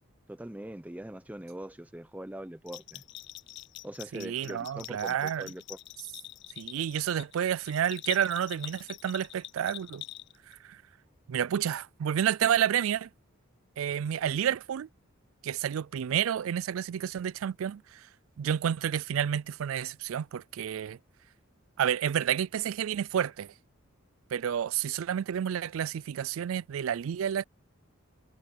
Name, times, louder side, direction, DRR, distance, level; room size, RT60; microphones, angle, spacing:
voice 1, 0.3-3.0 3.8-5.8, right 1 dB, 5° right, 0.7 m, -42 dB
Bell, 2.7-10.5, left 15 dB, 55° left, 0.5 m, -45 dB
voice 2, 4.1-5.5 6.6-10.0 10.6-10.8 11.3-13.1 13.8-14.9 15.4-18.1 18.4-21.0 21.8-23.5 24.3-27.4, right 9 dB, 80° right, 0.3 m, -30 dB
head